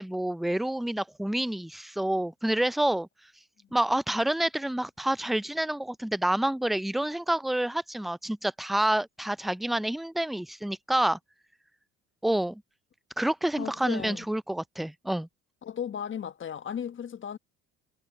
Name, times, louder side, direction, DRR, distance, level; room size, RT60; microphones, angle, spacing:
voice 1, 0.0-3.1 3.7-11.2 12.2-12.6 13.2-15.3, right 1 dB, ahead, 0.4 m, -28 dB
voice 2, 13.6-14.3 15.6-17.4, left 8 dB, 40° left, 1.4 m, -35 dB
hypercardioid pair, 65°, 32 cm